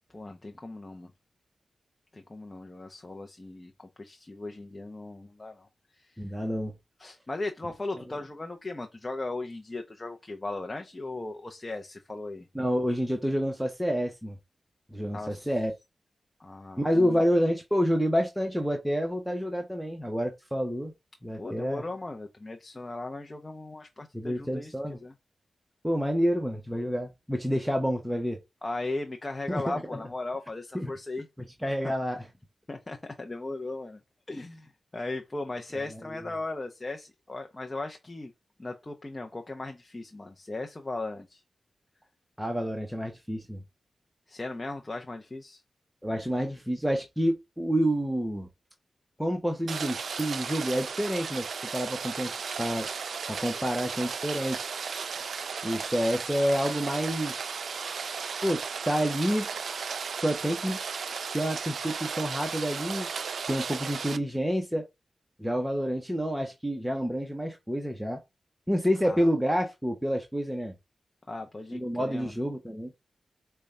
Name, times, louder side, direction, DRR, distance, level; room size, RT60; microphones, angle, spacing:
voice 1, 0.1-1.1 2.1-5.7 6.0-6.2 7.0-12.5 15.1-15.5 16.4-17.2 21.4-24.7 25.0-25.1 28.6-31.3 31.8-31.9 32.7-34.0 34.3-38.3 38.6-41.4 44.3-45.6 69.0-69.3 71.3-72.3, left 2 dB, 30° left, 0.6 m, -37 dB
voice 2, 6.2-6.7 12.5-14.4 14.9-15.7 16.8-20.9 21.2-21.8 24.1-25.0 25.8-28.4 29.5-30.0 30.7-30.9 31.4-32.2 35.7-35.8 36.1-36.2 42.4-43.6 46.0-48.5 49.2-51.5 51.7-52.3 52.6-52.9 53.3-54.6 55.6-57.5 58.4-59.5 60.2-60.8 61.3-63.1 63.5-64.8 65.4-68.2 68.7-70.7 71.7-72.9, equal, 5° right, 0.8 m, -28 dB
Rain, 49.7-64.2, right 5 dB, 80° right, 0.3 m, -35 dB
5.2 x 2.3 x 3.2 m
cardioid pair, 50°, 0 cm